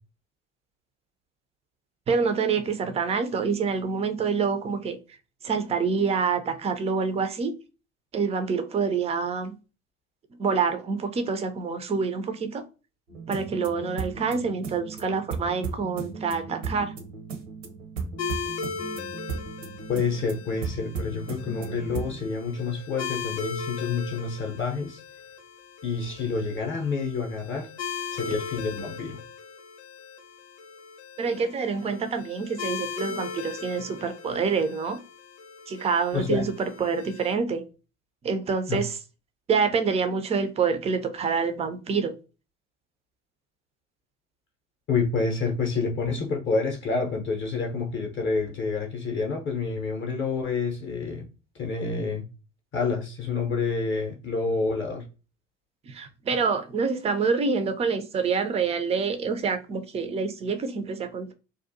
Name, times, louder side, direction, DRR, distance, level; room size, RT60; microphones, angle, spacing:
voice 1, 2.1-5.0 5.4-7.5 8.1-9.6 10.4-12.6 13.3-16.9 31.2-35.0 35.7-37.6 38.2-39.0 39.5-42.1 55.9-61.3, right 5 dB, 20° right, 0.3 m, -27 dB
sound 1, 13.1-22.3, right 5 dB, 80° right, 0.6 m, -36 dB
sound 2, 18.2-37.3, left 6 dB, 70° left, 0.7 m, -38 dB
voice 2, 19.9-25.0 25.8-27.7 28.1-29.2 36.1-36.5 38.7-38.8 44.9-51.3 51.5-52.2 52.7-55.0, left 4 dB, 30° left, 0.6 m, -28 dB
2.6 x 2.1 x 2.6 m
figure-of-eight pair, 65°, 37 cm